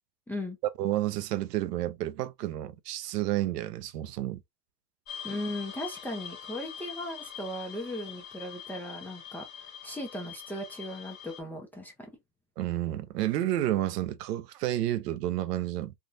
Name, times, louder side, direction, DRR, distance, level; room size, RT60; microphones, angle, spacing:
voice 1, 0.3-0.6 5.2-9.5 9.8-11.9, left 1 dB, 5° left, 0.6 m, -37 dB
voice 2, 0.8-4.4 12.6-15.9, right 14 dB, 80° right, 0.6 m, -30 dB
sound 1, 5.1-11.4, left 8 dB, 35° left, 1.2 m, -44 dB
3.4 x 2.3 x 2.5 m
supercardioid pair, 135°, 47 cm